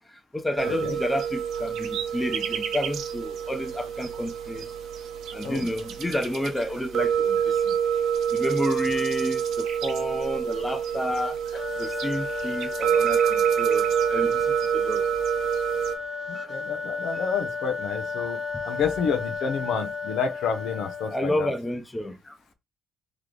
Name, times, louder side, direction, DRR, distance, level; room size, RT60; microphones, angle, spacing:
voice 1, 0.3-4.7 5.3-7.7 8.3-11.4 11.8-15.0 16.3-16.5 21.1-22.4, left 1 dB, 15° left, 0.8 m, -30 dB
sound 1, 0.6-15.9, right 8 dB, 80° right, 0.9 m, -27 dB
sound 2, 11.5-21.4, left 4 dB, 45° left, 1.5 m, -34 dB
voice 2, 16.3-21.5, left 6 dB, 85° left, 0.7 m, -29 dB
3.3 x 3.1 x 3.8 m
cardioid pair, 90°, 0 cm